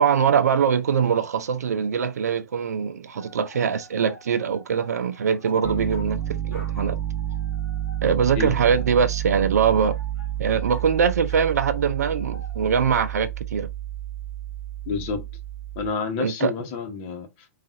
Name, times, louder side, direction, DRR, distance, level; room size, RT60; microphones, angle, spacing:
voice 1, 0.0-7.0 8.0-9.9 10.4-13.7 16.2-16.5, right 7 dB, 75° right, 0.5 m, -22 dB
sound 1, 3.1-12.6, left 1 dB, 25° left, 2.2 m, -48 dB
Piano, 5.6-15.9, right 12 dB, 30° right, 0.6 m, -30 dB
voice 2, 14.9-15.3 15.7-17.5, left 5 dB, 45° left, 1.0 m, -29 dB
3.8 x 2.5 x 2.5 m
hypercardioid pair, 120°, 9 cm